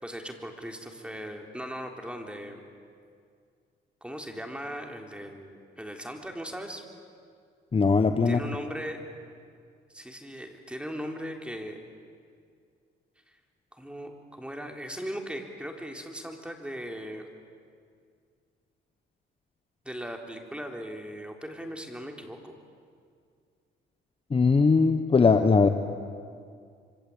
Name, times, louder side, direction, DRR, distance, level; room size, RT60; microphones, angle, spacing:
voice 1, 0.0-2.6 4.0-6.8 8.3-9.0 9.9-11.8 13.7-17.3 19.8-22.6, equal, 5° right, 3 dB, 3.9 m, -38 dB
voice 2, 7.7-8.4 24.3-25.7, left 4 dB, 30° left, 8 dB, 1.3 m, -20 dB
26.0 x 25.5 x 8.8 m, 2.2 s
cardioid pair, 90°, 20 cm